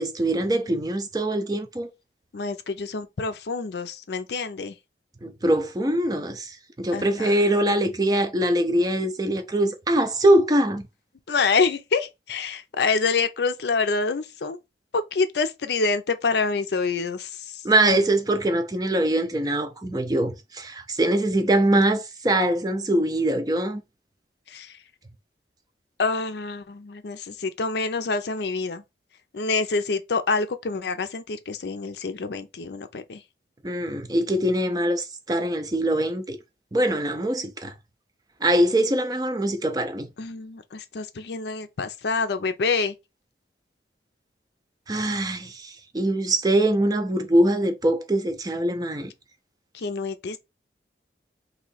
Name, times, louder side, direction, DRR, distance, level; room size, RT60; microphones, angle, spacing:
voice 1, 0.0-1.9 5.2-10.9 17.6-23.8 33.6-36.4 36.7-37.7 38.4-40.1 44.9-49.1, right 1 dB, 20° right, 0.4 m, -23 dB
voice 2, 2.3-4.7 6.9-7.3 11.3-14.6 14.9-17.6 24.5-24.7 26.0-28.8 29.3-33.2 40.2-42.9 49.7-50.4, left 4 dB, 70° left, 0.5 m, -27 dB
3.0 x 2.7 x 4.0 m
head